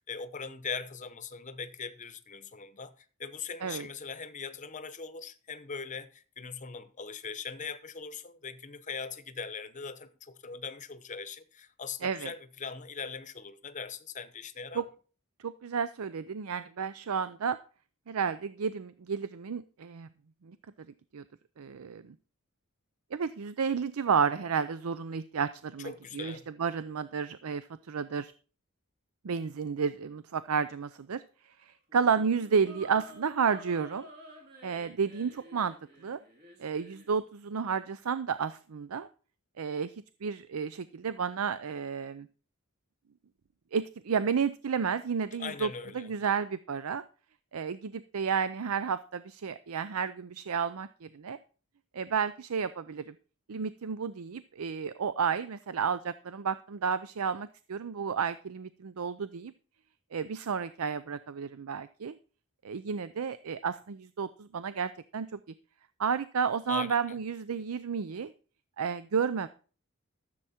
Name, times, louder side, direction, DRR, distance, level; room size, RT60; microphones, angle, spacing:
voice 1, 0.0-2.9 3.2-14.9 25.8-26.5 45.4-46.1 66.7-66.9, left 5 dB, 35° left, 0.9 m, -40 dB
voice 2, 12.0-12.3 14.7-14.8 15.4-17.6 18.1-20.1 20.4-20.6 21.1-21.2 21.6-22.1 23.1-28.3 29.2-34.1 34.6-35.7 36.0-36.2 36.6-39.1 39.6-39.9 40.2-42.3 43.7-47.0 47.5-51.4 51.9-53.1 53.5-59.5 60.1-62.2 62.6-65.4 66.0-68.3 68.8-69.5, right 6 dB, 80° right, 0.5 m, -32 dB
sound 1, 31.9-37.1, equal, 45° right, 3.2 m, -52 dB
13.5 x 7.6 x 4.3 m
head